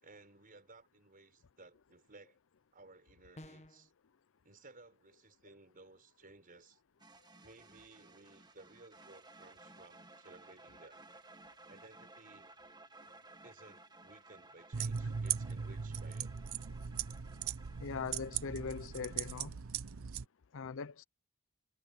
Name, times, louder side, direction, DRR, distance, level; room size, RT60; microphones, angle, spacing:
voice 1, 0.0-2.4 2.7-3.9 4.4-6.8 7.4-11.0 11.7-12.5 13.4-16.3, right 3 dB, 40° right, 5.6 m, -58 dB
sound 1, 3.4-3.9, left 1 dB, 30° left, 1.3 m, -52 dB
sound 2, 7.0-19.4, right 2 dB, 20° right, 1.9 m, -58 dB
sound 3, 14.7-20.2, right 7 dB, 70° right, 0.7 m, -39 dB
voice 2, 17.8-19.6 20.5-21.0, left 5 dB, 65° left, 0.6 m, -41 dB
head